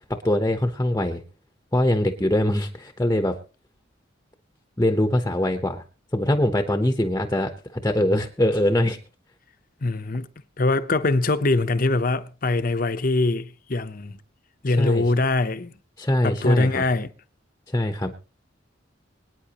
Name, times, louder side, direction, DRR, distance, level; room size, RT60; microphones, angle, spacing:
voice 1, 0.1-1.2 1.7-3.4 4.8-5.8 6.1-9.0 14.7-15.0 16.0-16.8 17.7-18.1, left 1 dB, 15° left, 0.9 m, -23 dB
voice 2, 9.8-10.3 10.6-14.2 14.6-15.7 16.2-17.1, left 2 dB, 45° left, 0.8 m, -23 dB
25.0 x 9.4 x 2.9 m
head